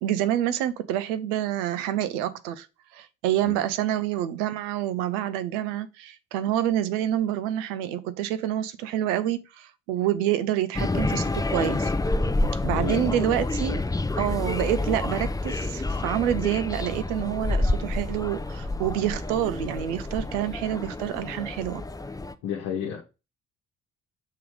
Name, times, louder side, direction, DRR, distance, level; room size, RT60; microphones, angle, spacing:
voice 1, 0.0-2.7 2.9-11.9 12.6-13.8 14.2-21.8, right 11 dB, 80° right, 0.6 m, -27 dB
sound 1, 10.7-22.3, left 2 dB, 10° left, 0.5 m, -28 dB
voice 2, 12.7-13.1 22.4-23.0, left 8 dB, 70° left, 1.0 m, -31 dB
6.7 x 3.1 x 4.9 m
hypercardioid pair, 45°, 36 cm